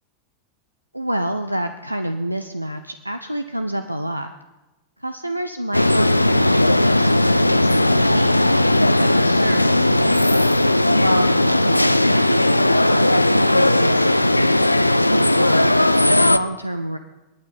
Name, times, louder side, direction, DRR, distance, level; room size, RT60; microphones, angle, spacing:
voice 1, 0.9-4.3 5.0-8.6 9.0-10.7 11.0-14.7 15.1-17.0, right 1 dB, 85° right, 9 dB, 0.5 m, -28 dB
sound 1, 5.7-16.4, left 1 dB, 85° left, 0.4 m, -17 dB
22.5 x 9.0 x 5.4 m, 1.1 s
figure-of-eight pair, 90°, 0 cm